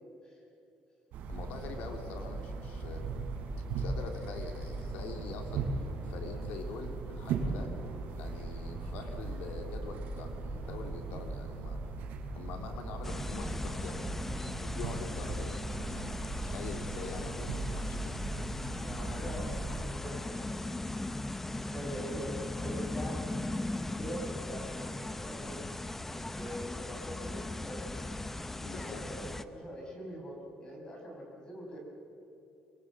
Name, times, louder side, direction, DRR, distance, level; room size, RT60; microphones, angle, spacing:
sound 1, 1.1-19.9, right 3 dB, 85° right, 3.7 m, -38 dB
voice 1, 1.3-3.0 3.7-7.7 8.1-11.8 12.3-15.6 15.8-18.2 28.6-29.1, left 4 dB, 85° left, 4 dB, 3.2 m, -44 dB
sound 2, 13.0-29.4, left 2 dB, 10° left, 0.7 m, -38 dB
voice 2, 18.6-21.0 21.6-23.1 23.7-25.6 26.1-27.9 28.6-31.8, equal, 25° left, 0 dB, 6.5 m, -43 dB
24.0 x 22.0 x 7.6 m, 2.8 s
cardioid pair, 160°, 3 cm